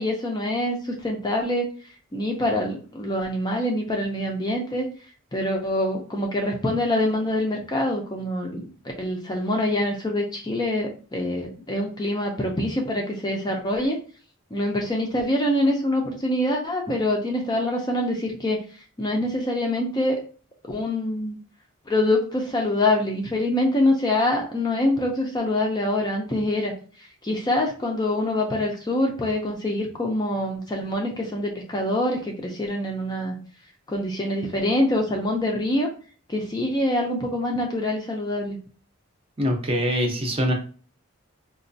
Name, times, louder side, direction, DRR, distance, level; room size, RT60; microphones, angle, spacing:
voice 1, 0.0-1.7 2.1-4.9 5.3-8.6 9.0-14.0 14.5-18.6 19.0-20.2 20.7-21.4 21.9-26.7 27.2-33.3 33.9-35.9 36.3-38.6, left 1 dB, 20° left, 1 dB, 0.4 m, -25 dB
voice 2, 39.4-40.5, equal, 25° right, 2 dB, 0.6 m, -23 dB
4.1 x 2.2 x 2.6 m, 0.39 s
head